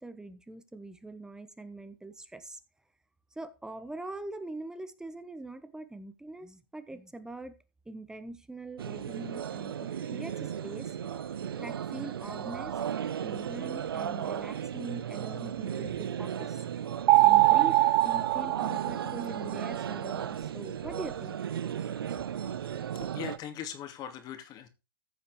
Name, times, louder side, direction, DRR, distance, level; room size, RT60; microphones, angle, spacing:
voice 1, 0.0-2.6 3.3-7.5 7.9-10.9 11.6-12.7 13.2-16.6 17.2-17.8 18.0-21.4, right 2 dB, 5° right, 1.3 m, -42 dB
sound 1, 8.8-23.4, right 9 dB, 85° right, 0.8 m, -35 dB
sound 2, 17.1-19.5, right 17 dB, 35° right, 0.6 m, -22 dB
voice 2, 22.9-24.7, left 9 dB, 35° left, 2.5 m, -40 dB
14.5 x 5.7 x 4.9 m
hypercardioid pair, 125°, 12 cm